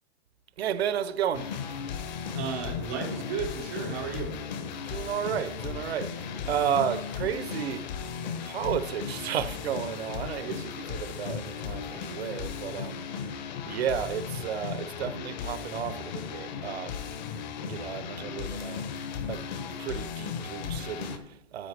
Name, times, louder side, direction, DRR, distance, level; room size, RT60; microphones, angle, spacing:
voice 1, 0.6-1.7 4.9-7.9 8.4-13.4 13.6-17.2 17.6-18.8 19.2-19.5 19.8-21.7, right 9 dB, 75° right, 0.6 m, -33 dB
sound 1, 1.3-21.2, left 7 dB, 45° left, 0.8 m, -36 dB
voice 2, 2.3-4.3 12.7-12.8, right 5 dB, 15° right, 0.3 m, -34 dB
9.6 x 9.2 x 3.3 m
hypercardioid pair, 160°, 32 cm